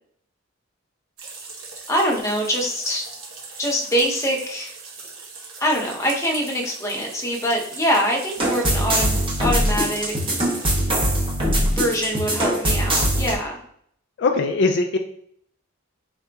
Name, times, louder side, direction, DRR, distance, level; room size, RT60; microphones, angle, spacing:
sound 1, 1.2-10.8, right 4 dB, 80° right, 1.0 m, -39 dB
voice 1, 1.9-3.0 3.6-4.7 5.6-10.1 11.7-13.6, equal, 15° left, -1 dB, 0.7 m, -24 dB
sound 2, 8.4-13.3, right 1 dB, 25° right, 0.7 m, -22 dB
voice 2, 14.2-15.0, left 3 dB, 55° left, 5 dB, 0.3 m, -20 dB
4.2 x 3.8 x 2.3 m, 0.66 s
head